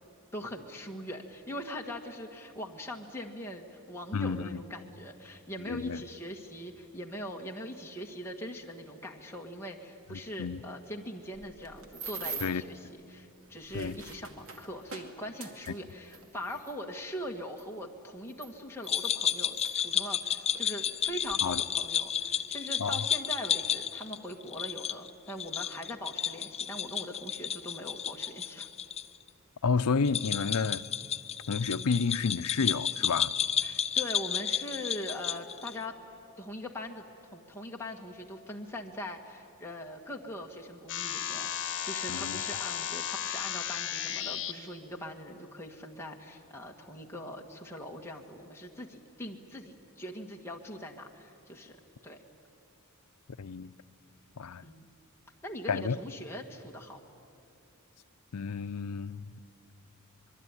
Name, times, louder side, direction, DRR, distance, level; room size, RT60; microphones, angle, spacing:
voice 1, 0.3-28.7 33.6-36.0 36.4-37.0 37.3-51.8 52.0-52.2 54.6-54.9 55.4-57.0, left 1 dB, 10° left, 1.7 m, -41 dB
voice 2, 4.1-4.6 5.6-6.0 10.1-10.6 12.4-12.6 13.7-14.0 21.4-21.6 22.8-23.1 29.6-30.8 31.5-33.3 42.1-42.4 53.4-53.7 54.4-54.6 55.7-56.0 58.3-59.3, left 5 dB, 85° left, 0.6 m, -31 dB
sound 1, 11.3-12.7 13.4-16.8 17.6-17.7 18.3-19.8 20.5-20.7 21.0-21.4, right 5 dB, 65° right, 2.3 m, -44 dB
sound 2, 18.9-29.0 29.3-29.4 30.0-35.8, left 8 dB, 30° left, 0.5 m, -32 dB
sound 3, 40.9-44.5, left 10 dB, 60° left, 1.5 m, -34 dB
25.5 x 21.5 x 9.8 m
head